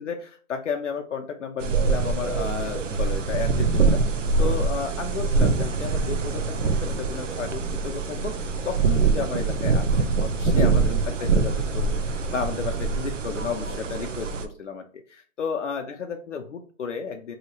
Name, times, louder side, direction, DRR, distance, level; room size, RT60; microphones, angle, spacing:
voice 1, 0.0-17.4, left 6 dB, 65° left, 3 dB, 0.5 m, -33 dB
sound 1, 1.6-14.5, right 4 dB, 65° right, 0.6 m, -24 dB
3.1 x 2.8 x 2.9 m, 0.43 s
hypercardioid pair, 180°, 40 cm